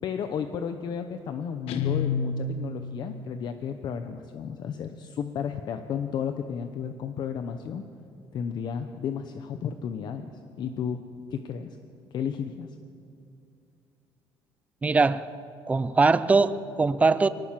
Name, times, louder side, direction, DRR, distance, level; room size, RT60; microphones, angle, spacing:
voice 1, 0.0-7.8 8.3-10.2 10.6-11.0 11.3-11.8 12.1-12.7, left 7 dB, 50° left, 8 dB, 0.9 m, -33 dB
Guitar, 1.7-3.4, left 5 dB, 85° left, 1.4 m, -30 dB
voice 2, 14.8-15.3 15.7-17.3, right 4 dB, 15° right, 15 dB, 0.5 m, -21 dB
24.0 x 18.5 x 7.5 m, 2.5 s
cardioid pair, 175°, 10 cm